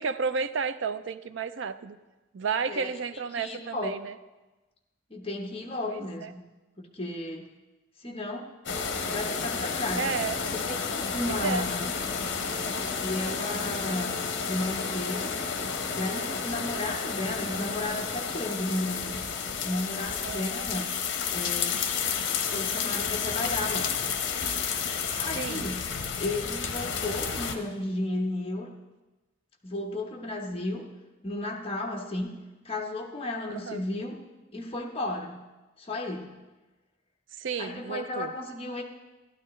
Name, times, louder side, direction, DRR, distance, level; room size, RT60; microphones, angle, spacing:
voice 1, 0.0-2.0 2.3-4.1 5.8-6.3 9.9-10.4 11.3-11.7 20.2-20.5 25.1-25.7 33.5-33.8 37.4-38.3, right 5 dB, 70° right, 13 dB, 0.4 m, -32 dB
voice 2, 2.7-3.9 5.1-6.4 6.8-7.5 8.0-8.5 9.1-10.1 10.7-12.2 13.0-15.4 15.9-19.2 19.6-20.9 21.3-21.7 22.1-24.0 25.2-25.9 26.2-28.7 29.6-30.9 31.2-32.4 32.6-34.2 34.5-35.4 35.8-36.4 37.6-38.8, left 1 dB, 30° left, 2 dB, 1.0 m, -34 dB
sound 1, 8.7-27.6, left 6 dB, 60° left, 0.9 m, -31 dB
12.5 x 12.0 x 3.2 m, 1.1 s
head